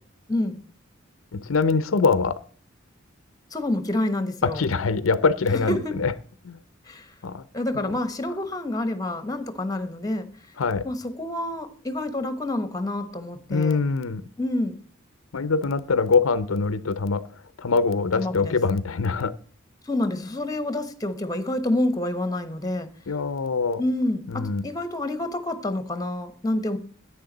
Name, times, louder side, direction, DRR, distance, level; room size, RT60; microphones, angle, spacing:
voice 1, 1.3-2.4 4.4-6.1 6.4-6.6 7.2-7.4 7.7-7.9 10.6-10.8 13.5-14.2 15.3-17.2 17.6-19.3 23.1-23.8 24.3-24.7, left 4 dB, 80° left, 14 dB, 0.6 m, -23 dB
voice 2, 3.5-4.6 5.5-6.0 6.9-7.1 7.5-10.3 10.8-13.8 14.4-14.8 18.1-18.6 19.9-22.9 23.8-26.8, left 1 dB, 20° left, 10 dB, 1.1 m, -28 dB
10.5 x 9.1 x 4.0 m, 0.43 s
head